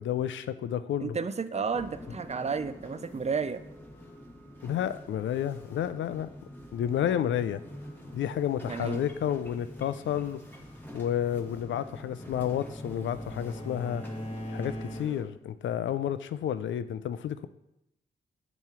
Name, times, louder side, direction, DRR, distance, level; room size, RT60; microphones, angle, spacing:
voice 1, 0.0-1.2 4.6-6.3 6.7-7.6 8.1-10.4 10.9-14.0 14.5-17.5, left 10 dB, 80° left, 13 dB, 0.4 m, -30 dB
voice 2, 1.0-3.6 8.7-9.0, right 5 dB, 35° right, 12 dB, 0.5 m, -32 dB
sound 1, 1.7-15.2, equal, 10° left, 2.1 m, -46 dB
Bowed string instrument, 11.6-15.4, equal, 35° left, 1.0 m, -41 dB
9.0 x 3.1 x 4.4 m, 0.83 s
cardioid pair, 55°, 19 cm